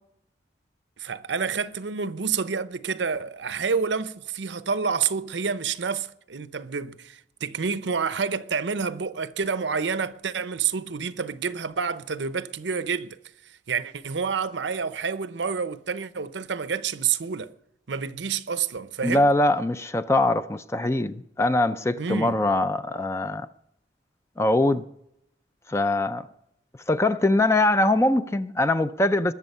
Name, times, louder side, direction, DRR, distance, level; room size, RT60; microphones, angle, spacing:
voice 1, 1.0-13.2 13.7-17.5 17.9-19.3 22.0-22.4, right 6 dB, 85° right, 0.7 m, -28 dB
voice 2, 19.0-23.5 24.4-24.8 25.7-26.3 26.9-29.3, left 2 dB, 15° left, 0.4 m, -22 dB
21.5 x 7.2 x 5.5 m
head